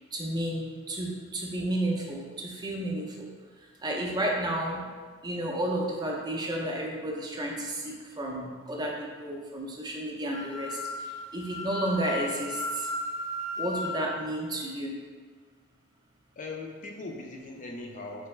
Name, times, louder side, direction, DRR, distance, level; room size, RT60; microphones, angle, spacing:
voice 1, 0.1-3.3 3.8-4.8 5.2-10.8 11.3-12.9 13.6-14.9, right 1 dB, 20° right, -1 dB, 0.5 m, -32 dB
Wind instrument woodwind instrument, 10.2-14.0, left 1 dB, 65° left, 0.8 m, -35 dB
voice 2, 16.4-18.3, left 2 dB, 40° left, 1 dB, 0.4 m, -39 dB
3.7 x 3.3 x 3.1 m, 1.5 s
head